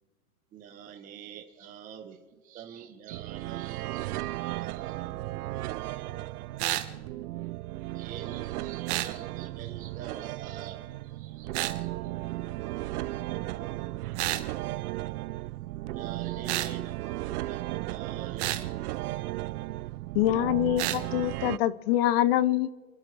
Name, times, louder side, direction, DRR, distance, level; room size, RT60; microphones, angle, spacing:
voice 1, 0.5-5.0 7.9-12.0 15.9-19.2 19.6-20.1, right 8 dB, 20° right, 0.9 m, -46 dB
sound 1, 3.1-21.6, right 17 dB, 80° right, 0.5 m, -35 dB
voice 2, 4.5-7.3 11.5-14.3 14.6-14.7, left 1 dB, 85° left, 5.8 m, -57 dB
sound 2, 6.6-6.9 8.9-9.1 11.5-11.8 14.2-14.5 16.5-16.7 18.4-18.6 20.8-21.0, right 15 dB, 45° right, 1.2 m, -30 dB
voice 3, 20.1-22.7, left 13 dB, 40° left, 0.6 m, -25 dB
28.5 x 12.0 x 3.3 m
supercardioid pair, 145°, 45 cm